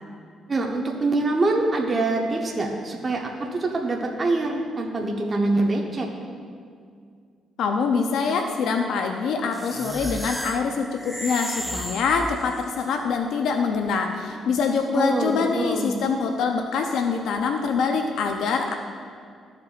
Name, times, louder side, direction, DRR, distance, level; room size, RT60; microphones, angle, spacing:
voice 1, 0.5-3.2 3.5-6.1 14.9-15.9, right 2 dB, 35° right, 0 dB, 0.8 m, -24 dB
voice 2, 7.6-18.7, left 5 dB, 80° left, 4 dB, 0.5 m, -24 dB
sound 1, 9.5-12.8, equal, ahead, 0.4 m, -33 dB
14.0 x 5.1 x 2.4 m, 2.2 s
cardioid pair, 90°, 0 cm